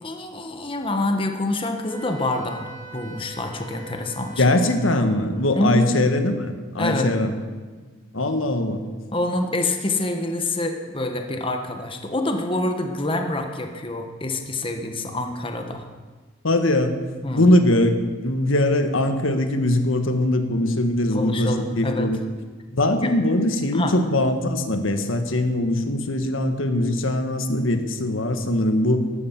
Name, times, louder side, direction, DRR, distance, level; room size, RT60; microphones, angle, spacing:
voice 1, 0.0-4.4 5.5-5.9 6.8-7.1 9.1-15.8 17.2-17.5 21.1-22.1 23.0-23.1 23.7-23.9, left 2 dB, 25° left, 4 dB, 1.3 m, -26 dB
Wind instrument woodwind instrument, 1.9-5.3, right 3 dB, 40° right, 2.1 m, -43 dB
voice 2, 4.4-7.3 8.1-8.8 16.4-17.0 17.3-22.2 22.7-29.1, left 1 dB, 85° left, 7 dB, 1.6 m, -21 dB
14.0 x 11.5 x 7.5 m, 1.4 s
head